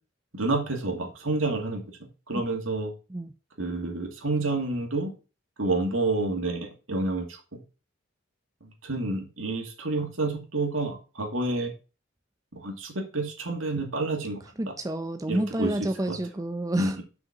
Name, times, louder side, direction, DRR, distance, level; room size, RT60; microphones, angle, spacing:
voice 1, 0.3-1.8 2.3-2.9 3.6-5.1 5.6-7.6 8.8-11.7 12.5-14.7 15.3-16.2 16.7-17.0, right 2 dB, 85° right, 2.3 m, -29 dB
voice 2, 14.6-17.0, right 1 dB, 15° right, 0.5 m, -29 dB
5.8 x 5.2 x 5.7 m
head